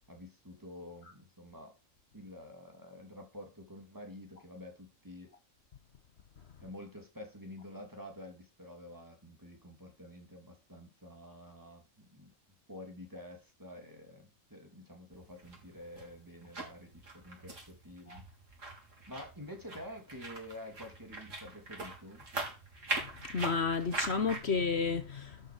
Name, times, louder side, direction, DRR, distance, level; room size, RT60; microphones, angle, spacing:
voice 1, 0.1-1.8 2.1-5.3 6.6-12.3 12.7-18.3 19.1-22.3, left 1 dB, 15° right, 2.9 m, -49 dB
sound 1, 15.1-24.4, right 2 dB, 70° right, 3.9 m, -42 dB
voice 2, 22.9-25.5, left 5 dB, 55° left, 1.2 m, -32 dB
12.0 x 6.8 x 5.0 m
omnidirectional pair, 1.4 m